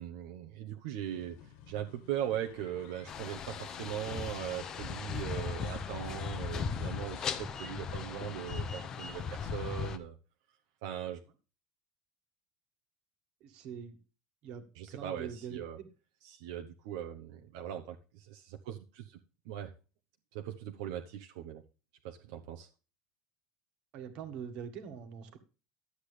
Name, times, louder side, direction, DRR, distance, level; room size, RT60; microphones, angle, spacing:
voice 1, 0.0-10.2 10.8-11.2 14.7-15.8 16.2-19.2 19.4-19.7 20.3-21.6 22.0-22.7, right 10 dB, 70° right, 4 dB, 0.9 m, -40 dB
sound 1, 1.0-7.4, left 9 dB, 55° left, 1.5 m, -56 dB
sound 2, 3.1-10.0, left 6 dB, 25° left, 0.8 m, -38 dB
voice 2, 13.4-14.0 14.4-15.9 23.9-25.4, right 7 dB, 45° right, 7 dB, 1.7 m, -44 dB
12.0 x 8.1 x 3.3 m, 0.34 s
cardioid pair, 175°, 2 cm